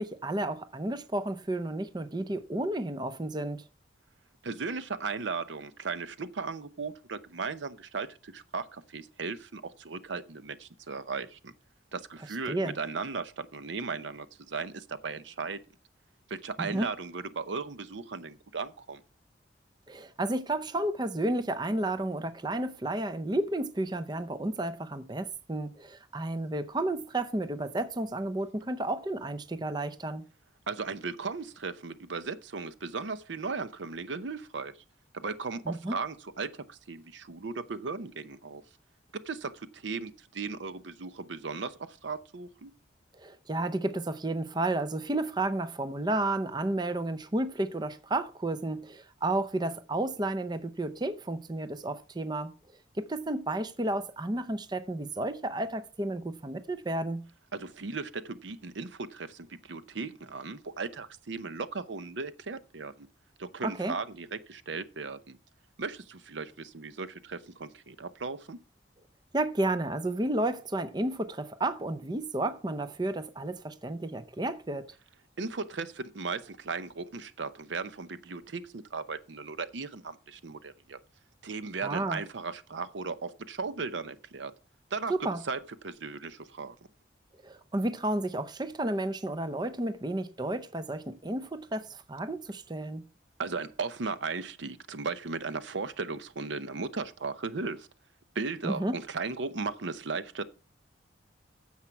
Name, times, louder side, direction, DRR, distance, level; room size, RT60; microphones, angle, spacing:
voice 1, 0.0-3.6 12.5-12.7 16.6-16.9 19.9-30.3 35.7-36.0 43.2-52.5 53.0-57.2 63.6-64.0 69.3-74.9 81.8-82.2 85.1-85.4 87.4-93.0 98.6-99.0, right 2 dB, 25° right, 0.6 m, -32 dB
voice 2, 4.4-11.5 11.9-15.6 16.3-19.0 30.7-34.7 35.1-38.6 39.2-42.7 57.5-63.1 63.4-65.4 65.8-68.6 75.4-81.0 81.4-84.5 84.9-85.1 85.5-86.7 93.4-97.9 98.3-100.4, right 4 dB, 80° right, 0.7 m, -36 dB
9.9 x 7.3 x 4.5 m
head